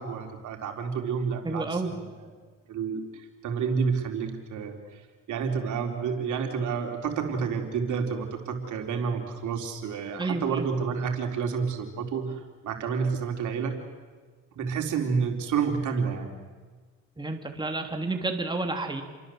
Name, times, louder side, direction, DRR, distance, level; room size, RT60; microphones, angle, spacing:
voice 1, 0.0-2.0 2.7-5.0 5.3-13.7 14.5-16.3, right 6 dB, 75° right, 3 dB, 4.2 m, -29 dB
voice 2, 1.4-1.9 10.2-10.7 17.2-19.0, right 2 dB, 15° right, 4 dB, 3.2 m, -30 dB
29.5 x 23.0 x 8.0 m, 1.4 s
cardioid pair, 90°, 30 cm